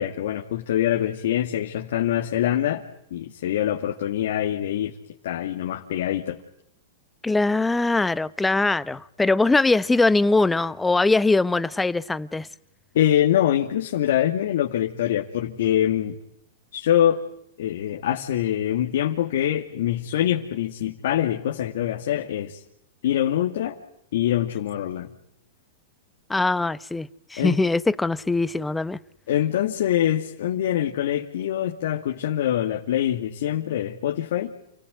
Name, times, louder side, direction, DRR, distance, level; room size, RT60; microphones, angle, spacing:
voice 1, 0.0-2.8 3.1-4.9 5.2-6.4 12.9-16.2 16.7-17.2 17.6-22.6 23.0-23.8 24.1-25.1 27.4-27.6 29.3-34.5, left 11 dB, 70° left, 2.4 m, -24 dB
voice 2, 7.2-12.5 26.3-29.0, left 3 dB, 5° left, 0.9 m, -22 dB
29.0 x 17.0 x 9.4 m
hypercardioid pair, 135°, 0 cm